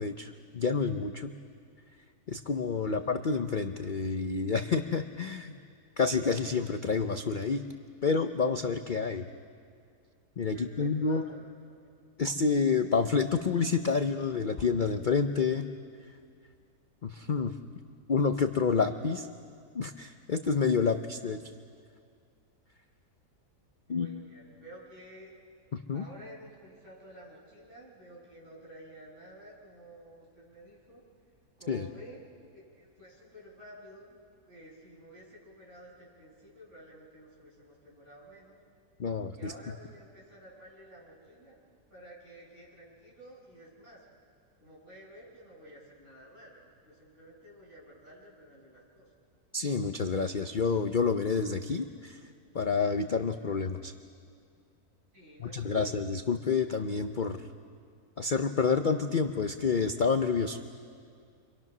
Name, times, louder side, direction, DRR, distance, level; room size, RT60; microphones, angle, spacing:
voice 1, 0.0-1.3 2.3-5.6 6.0-7.6 8.0-9.3 10.4-11.2 12.2-15.7 17.0-17.5 18.1-19.3 19.7-21.4 23.9-24.1 25.7-26.0 31.7-31.9 39.0-39.5 49.5-52.2 52.5-53.9 55.4-57.4 58.2-60.6, left 5 dB, 45° left, 7 dB, 0.7 m, -28 dB
voice 2, 10.5-11.8 23.8-25.3 25.9-31.0 31.6-32.3 32.5-34.2 34.4-38.6 39.3-44.0 44.6-49.1 55.1-55.9, right 1 dB, 50° right, -6 dB, 7.9 m, -52 dB
30.0 x 24.5 x 6.1 m, 2.2 s
omnidirectional pair, 1.7 m